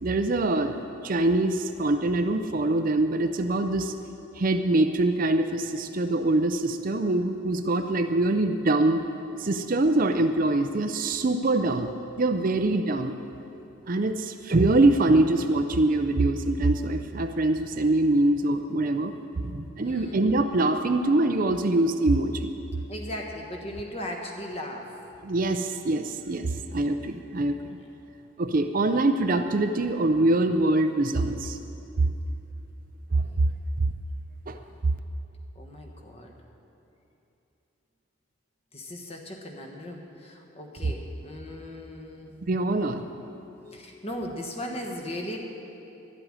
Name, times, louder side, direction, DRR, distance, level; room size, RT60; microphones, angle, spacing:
voice 1, 0.0-0.7 1.0-3.9 4.4-9.0 9.4-11.9 12.2-13.1 13.9-22.5 25.2-27.6 28.4-31.6 32.0-32.1 33.1-33.2 34.5-34.6 42.5-43.1, right 2 dB, 40° right, 7 dB, 0.5 m, -24 dB
voice 2, 19.8-20.3 22.9-24.9 27.7-27.9 33.2-33.5 35.5-36.3 38.7-42.3 43.7-45.4, left 1 dB, 30° left, 2 dB, 1.3 m, -38 dB
12.0 x 8.0 x 9.9 m, 2.9 s
head